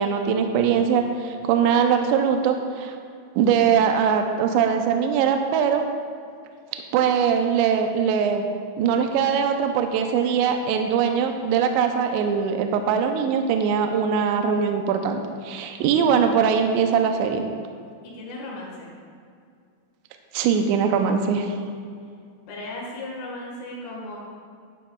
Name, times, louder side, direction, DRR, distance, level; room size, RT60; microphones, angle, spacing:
voice 1, 0.0-3.0 3.4-5.8 6.9-8.5 8.8-17.4 20.3-21.5, right 7 dB, 90° right, 5 dB, 2.5 m, -21 dB
voice 2, 15.9-16.4 18.0-18.9 22.5-24.2, left 2 dB, 75° left, -3 dB, 4.2 m, -36 dB
11.0 x 11.0 x 2.3 m, 2.3 s
omnidirectional pair, 5.8 m